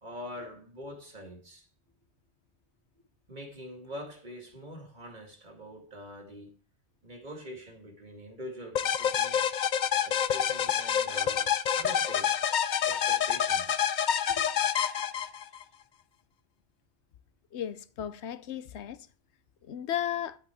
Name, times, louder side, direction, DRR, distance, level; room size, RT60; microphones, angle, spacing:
voice 1, 0.0-1.7 3.3-6.5 7.0-9.4 10.0-12.3 12.9-13.8 14.3-14.4, equal, 45° right, 2.0 m, -44 dB
sound 1, 8.8-15.6, left 9 dB, 55° left, 0.6 m, -27 dB
voice 2, 17.5-19.0 19.7-20.4, left 10 dB, 80° left, 1.0 m, -34 dB
10.5 x 7.9 x 4.3 m
omnidirectional pair, 1.1 m